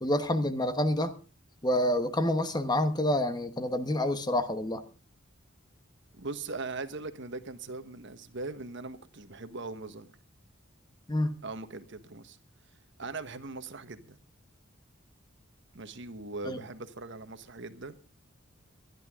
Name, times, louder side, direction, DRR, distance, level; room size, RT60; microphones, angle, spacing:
voice 1, 0.0-1.1 1.6-4.8 11.1-11.3 16.4-16.6, left 1 dB, 20° left, 1.2 m, -28 dB
voice 2, 6.2-10.1 11.4-12.4 13.0-14.1 15.7-18.0, right 3 dB, 65° right, 1.3 m, -40 dB
23.5 x 11.0 x 3.7 m
head